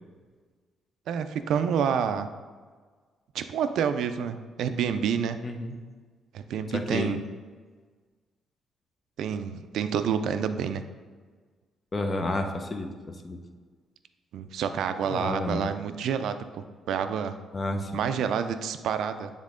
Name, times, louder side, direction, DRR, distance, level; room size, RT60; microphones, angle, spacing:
voice 1, 1.1-2.3 3.3-5.4 6.3-7.2 9.2-10.8 14.3-17.4 17.9-19.3, right 7 dB, 75° right, 9 dB, 0.4 m, -28 dB
voice 2, 5.4-5.8 6.7-7.1 11.9-13.4 15.1-15.7 17.5-18.0, left 2 dB, 35° left, 5 dB, 0.7 m, -31 dB
7.5 x 3.6 x 3.7 m, 1.5 s
cardioid pair, 90°, 0 cm